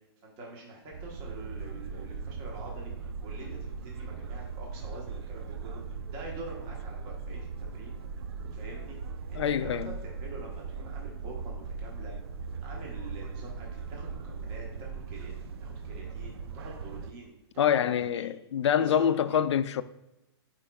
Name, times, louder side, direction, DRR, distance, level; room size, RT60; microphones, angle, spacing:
voice 1, 0.2-8.0 8.5-9.0 9.3-12.1 12.6-15.3 15.6-18.4 18.8-19.5, right 2 dB, 25° right, 1.1 m, -46 dB
sound 1, 0.9-17.1, right 5 dB, 65° right, 0.5 m, -39 dB
voice 2, 9.4-9.9 17.6-19.8, left 8 dB, 90° left, 0.4 m, -26 dB
9.9 x 4.5 x 2.3 m
hypercardioid pair, 165°, 14 cm